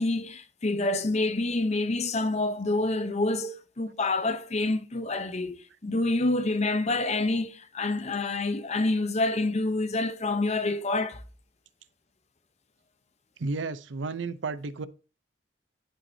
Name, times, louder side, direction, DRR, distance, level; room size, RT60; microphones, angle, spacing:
voice 1, 0.0-11.2, left 2 dB, 35° left, 0.7 m, -27 dB
voice 2, 13.4-14.9, right 3 dB, 80° right, 0.6 m, -32 dB
11.0 x 5.8 x 2.7 m
head